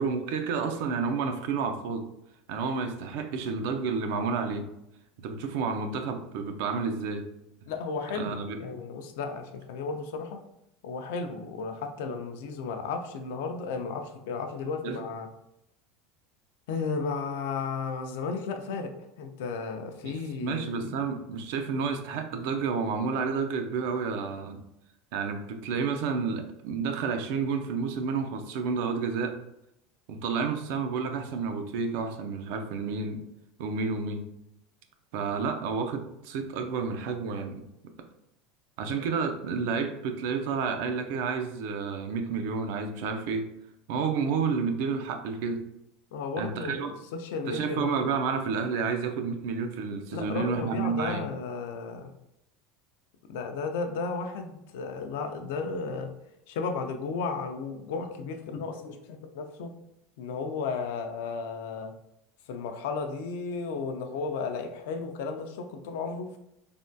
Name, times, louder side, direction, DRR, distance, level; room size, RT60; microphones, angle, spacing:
voice 1, 0.0-2.1 2.5-4.7 5.2-7.3 8.1-8.6 14.8-15.0 20.0-24.6 25.1-29.4 30.1-33.2 33.6-34.3 35.1-37.6 38.8-43.5 43.9-45.6 46.4-46.9 47.5-51.3, right 5 dB, 70° right, 6 dB, 0.4 m, -30 dB
voice 2, 7.7-10.4 10.8-15.3 16.7-18.9 19.2-21.0 46.1-48.1 50.1-52.1 53.3-56.1 56.5-59.7 60.2-61.9 62.5-66.3, left 4 dB, 80° left, 6 dB, 0.4 m, -34 dB
3.4 x 2.2 x 2.6 m, 0.83 s
supercardioid pair, 145°, 0 cm